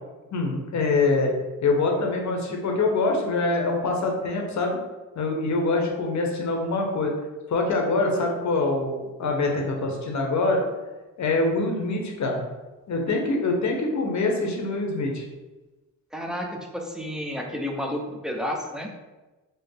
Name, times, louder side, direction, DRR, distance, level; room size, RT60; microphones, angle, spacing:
voice 1, 0.3-4.8 5.2-7.1 7.5-10.7 11.2-12.4 12.9-15.3, left 3 dB, 50° left, 1 dB, 0.9 m, -24 dB
voice 2, 16.1-18.9, equal, ahead, 1 dB, 0.6 m, -31 dB
4.4 x 2.0 x 3.3 m, 1.2 s
cardioid pair, 75°, 35 cm